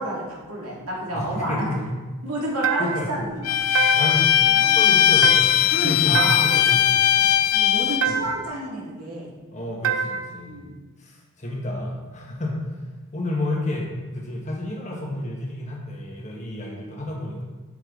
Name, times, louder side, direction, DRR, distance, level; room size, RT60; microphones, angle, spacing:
voice 1, 0.0-1.7 2.2-3.5 5.7-6.5 6.7-6.8 7.5-9.3 10.5-10.7, right 1 dB, 85° right, -4 dB, 2.4 m, -30 dB
voice 2, 1.1-2.0 2.8-3.1 3.6-7.3 8.1-8.2 9.5-10.6 11.0-12.6 13.1-17.4, left 1 dB, 30° left, -2 dB, 1.5 m, -30 dB
sound 1, 2.6-3.2 3.7-4.3 5.2-5.8 6.1-6.7 8.0-8.6 9.8-10.4, right 6 dB, 65° right, 0.5 m, -26 dB
Bowed string instrument, 3.4-8.1, left 11 dB, 75° left, 0.4 m, -19 dB
8.7 x 6.6 x 3.9 m, 1.2 s
head